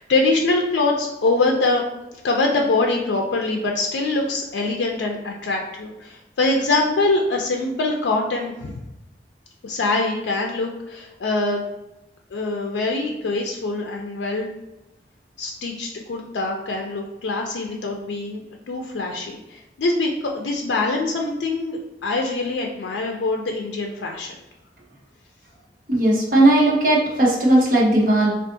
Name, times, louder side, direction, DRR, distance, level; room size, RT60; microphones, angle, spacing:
voice 1, 0.0-1.8 2.2-8.7 9.6-11.7 12.3-14.5 15.4-24.3, left 3 dB, 80° left, 1 dB, 0.4 m, -24 dB
voice 2, 25.9-28.3, right 1 dB, 50° right, -4 dB, 0.9 m, -17 dB
3.5 x 2.4 x 2.6 m, 0.95 s
head